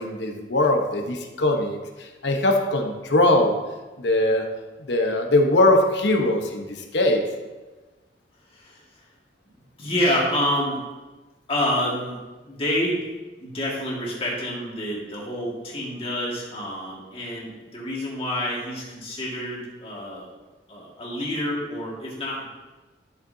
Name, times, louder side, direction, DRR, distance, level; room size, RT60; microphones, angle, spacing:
voice 1, 0.0-3.6 4.0-4.5 4.9-7.2, left 1 dB, 70° left, 3 dB, 1.0 m, -21 dB
voice 2, 9.8-10.8 11.5-12.2 12.4-13.0 13.4-20.3 20.7-22.5, equal, 30° left, -4 dB, 2.0 m, -28 dB
11.5 x 6.6 x 2.8 m, 1.2 s
head